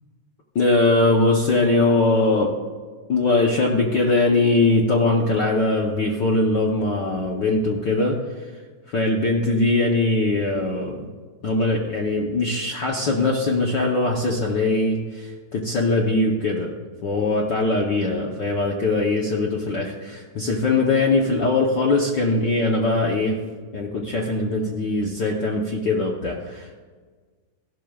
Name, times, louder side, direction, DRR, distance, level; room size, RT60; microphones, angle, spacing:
voice 1, 0.5-2.5 3.1-8.2 8.9-11.0 11.4-16.7 17.0-23.4 23.7-26.8, left 2 dB, 75° left, -1 dB, 1.0 m, -21 dB
15.5 x 12.0 x 2.4 m, 1.5 s
omnidirectional pair, 3.3 m